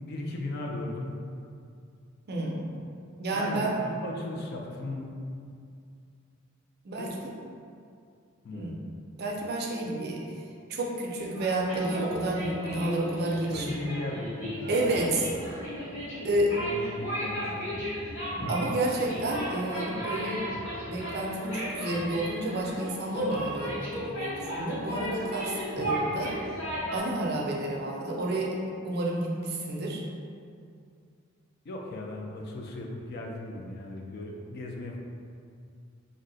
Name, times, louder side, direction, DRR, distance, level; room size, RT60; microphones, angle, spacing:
voice 1, 0.0-1.1 3.3-5.2 7.0-7.3 8.4-8.8 13.3-15.2 16.5-17.9 31.7-35.0, left 2 dB, 50° left, 0 dB, 0.4 m, -37 dB
voice 2, 2.3-2.7 3.2-3.8 6.8-7.3 8.5-8.7 9.1-10.2 10.7-13.9 14.7-15.3 16.2-16.6 18.5-20.4 20.9-26.4 26.9-28.6 28.8-30.0, right 1 dB, 50° right, -2 dB, 0.4 m, -30 dB
sound 1, 11.2-27.0, equal, 75° left, 1.1 m, -35 dB
2.7 x 2.0 x 3.8 m, 2.3 s
head